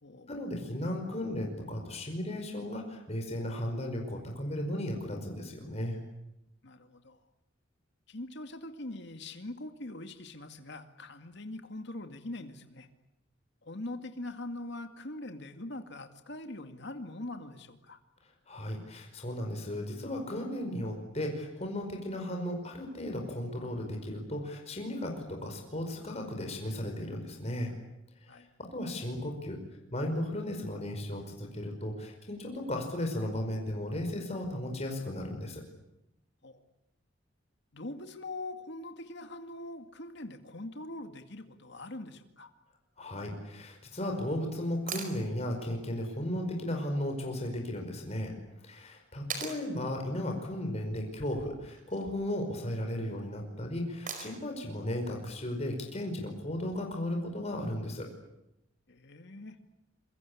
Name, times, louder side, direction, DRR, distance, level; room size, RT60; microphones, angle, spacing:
voice 1, 0.3-6.0 18.5-27.7 28.2-29.6 29.9-35.6 43.0-48.3 48.6-58.1, left 1 dB, 35° left, 2 dB, 5.2 m, -35 dB
voice 2, 6.6-7.2 8.1-12.9 13.6-18.0 28.3-28.5 36.4-36.6 37.7-42.5 58.9-59.6, left 2 dB, 60° left, 7 dB, 2.2 m, -42 dB
sound 1, 44.9-45.2 47.4-47.5 49.3-49.6 51.6-52.1 54.1-54.5 56.7-56.8, right 6 dB, 45° right, 5.2 m, -39 dB
27.0 x 23.5 x 8.6 m, 0.88 s
head